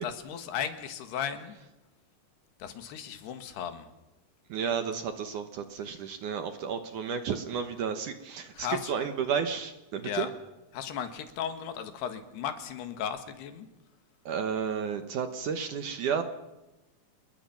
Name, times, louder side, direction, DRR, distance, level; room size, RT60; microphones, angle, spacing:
voice 1, 0.0-1.6 2.6-3.9 8.6-8.9 10.0-10.3 10.7-13.7, left 8 dB, 80° left, 8 dB, 3.6 m, -35 dB
voice 2, 4.5-10.3 14.3-16.2, right 7 dB, 65° right, 8 dB, 2.2 m, -32 dB
28.5 x 21.5 x 5.9 m, 1.0 s
omnidirectional pair, 4.7 m